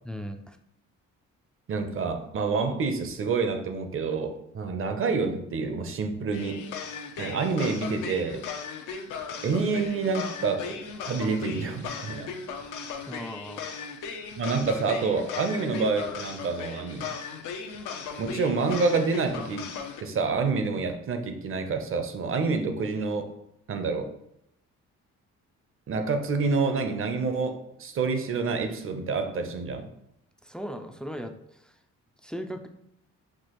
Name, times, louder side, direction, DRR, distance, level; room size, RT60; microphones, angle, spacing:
voice 1, 0.0-0.6 13.0-13.6 30.4-31.8 32.2-32.7, equal, 5° left, 7 dB, 0.3 m, -38 dB
voice 2, 1.7-6.6 7.2-8.4 9.4-12.3 14.4-17.1 18.2-19.7 20.0-23.3 23.7-24.2 25.9-29.9, right 4 dB, 45° right, 7 dB, 0.6 m, -28 dB
sound 1, 6.3-20.0, left 5 dB, 80° left, 0.6 m, -37 dB
6.0 x 2.4 x 2.9 m, 0.77 s
cardioid pair, 90°, 30 cm